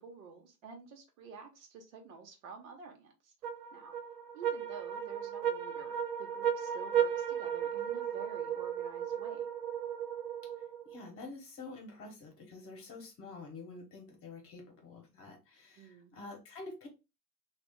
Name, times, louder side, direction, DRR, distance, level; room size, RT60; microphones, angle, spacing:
voice 1, 0.0-3.3 3.7-3.9 4.3-9.5 15.8-16.1, right 5 dB, 60° right, 1.2 m, -50 dB
sound 1, 3.4-11.0, right 9 dB, 80° right, 0.8 m, -35 dB
voice 2, 10.8-16.9, left 3 dB, 30° left, 1.2 m, -48 dB
3.0 x 2.5 x 3.7 m
hypercardioid pair, 105°, 48 cm